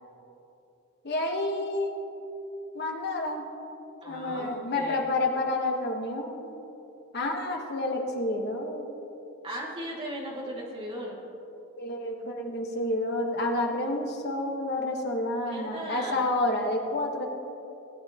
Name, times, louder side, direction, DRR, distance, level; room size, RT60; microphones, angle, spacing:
voice 1, 1.0-1.9 2.7-3.5 4.1-6.6 7.1-8.9 11.8-17.3, left 2 dB, 50° left, 1 dB, 1.3 m, -29 dB
voice 2, 4.0-5.0 9.4-11.2 15.4-16.3, equal, 25° right, -4 dB, 2.2 m, -37 dB
18.0 x 9.7 x 2.9 m, 2.9 s
head